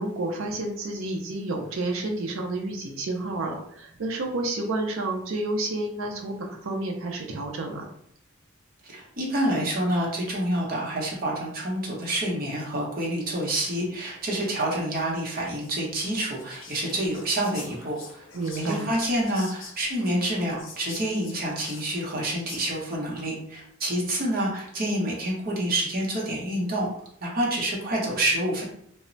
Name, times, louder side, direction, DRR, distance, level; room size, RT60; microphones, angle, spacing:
voice 1, 0.0-7.9 18.3-18.9, right 2 dB, 90° right, 2 dB, 0.5 m, -30 dB
voice 2, 8.8-18.2 18.6-26.9 27.2-28.6, right 1 dB, 45° right, -3 dB, 0.8 m, -28 dB
Whispering, 15.5-23.0, left 4 dB, 80° left, 0.6 m, -45 dB
2.1 x 2.0 x 3.7 m, 0.67 s
head